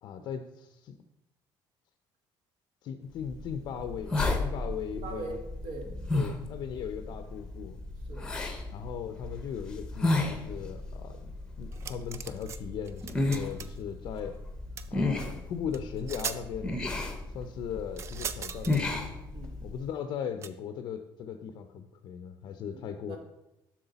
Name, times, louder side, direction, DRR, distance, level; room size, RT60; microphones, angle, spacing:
voice 1, 0.0-1.0 2.8-5.4 6.1-7.8 8.7-14.4 14.9-16.8 17.3-18.9 19.6-23.2, left 8 dB, 50° left, 8 dB, 0.4 m, -38 dB
sound 1, 3.2-19.8, left 2 dB, 10° left, 0.7 m, -34 dB
voice 2, 4.9-5.9 8.1-8.3 19.3-19.7 22.6-23.2, right 2 dB, 80° right, 3 dB, 1.5 m, -42 dB
sound 2, 11.7-12.6 12.9-13.8 14.8-14.9 15.7-15.8 16.1-16.4 18.0-18.8 20.4-20.5, right 7 dB, 30° right, 0.3 m, -38 dB
7.9 x 6.0 x 4.0 m, 0.91 s
cardioid pair, 170°, 9 cm